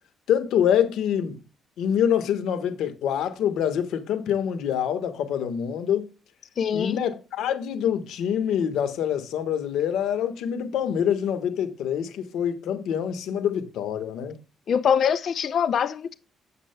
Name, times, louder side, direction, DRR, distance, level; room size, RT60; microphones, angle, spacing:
voice 1, 0.3-1.4 1.8-6.1 6.7-14.4, left 9 dB, 85° left, 1.4 m, -25 dB
voice 2, 6.6-7.0 14.7-16.1, left 7 dB, 60° left, 0.6 m, -23 dB
9.9 x 7.5 x 2.3 m
cardioid pair, 90°, 0 cm